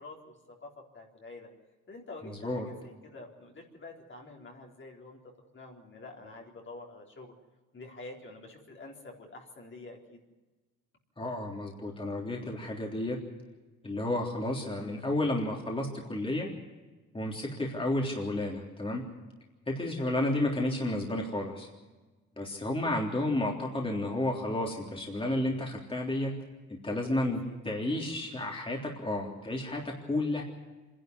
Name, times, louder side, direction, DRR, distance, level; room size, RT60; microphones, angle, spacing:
voice 1, 0.0-1.5 1.9-5.2 5.5-7.3 7.7-10.2 14.6-15.1 19.9-20.3 27.1-27.6, left 2 dB, 40° left, 0 dB, 4.0 m, -48 dB
voice 2, 11.2-13.2 13.8-16.5 17.1-19.0 19.7-21.7 22.4-26.3 26.8-27.4 27.7-30.4, left 1 dB, 20° left, -1 dB, 3.6 m, -31 dB
25.5 x 11.5 x 9.7 m, 1.2 s
cardioid pair, 90°, 30 cm